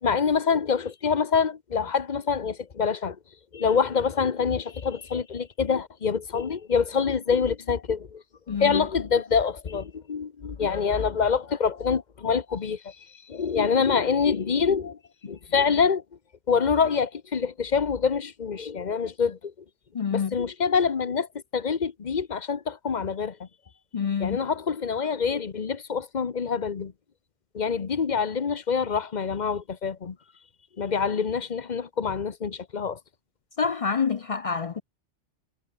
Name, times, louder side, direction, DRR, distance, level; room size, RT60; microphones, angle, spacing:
voice 1, 0.0-3.2 3.5-8.2 8.5-13.0 13.3-16.0 16.5-19.5 20.1-23.5 24.2-26.9 27.5-30.2 30.8-33.0, left 6 dB, 40° left, 1.0 m, -26 dB
voice 2, 8.5-8.8 19.9-20.4 23.9-24.4 33.6-34.8, left 6 dB, 55° left, 0.4 m, -27 dB
omnidirectional pair, 1.3 m